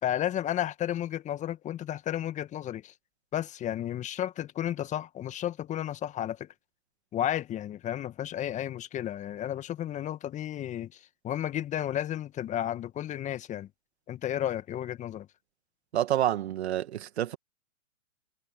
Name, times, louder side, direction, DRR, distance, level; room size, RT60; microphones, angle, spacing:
voice 1, 0.0-2.9 3.3-6.5 7.1-13.7 14.1-15.3, left 11 dB, 20° left, 1.7 m, -32 dB
voice 2, 15.9-17.4, right 12 dB, 55° right, 2.0 m, -28 dB
figure-of-eight pair, 120°, 39 cm